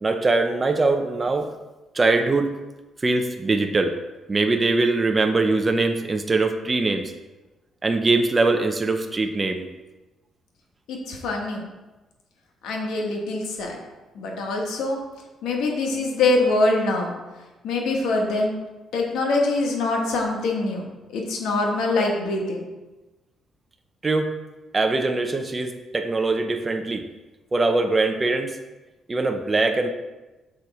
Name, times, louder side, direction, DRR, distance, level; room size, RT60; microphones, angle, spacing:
voice 1, 0.0-1.5 1.9-2.5 3.0-3.9 4.3-7.1 7.8-9.6 24.0-24.3 24.7-27.1 27.5-28.6 29.1-29.9, right 3 dB, 25° right, 5 dB, 0.6 m, -22 dB
voice 2, 10.9-11.6 12.6-13.8 14.1-15.0 15.4-17.1 17.6-18.5 18.9-22.7, left 2 dB, 85° left, 1 dB, 1.3 m, -24 dB
6.3 x 4.0 x 4.7 m, 1.1 s
cardioid pair, 90°, 0 cm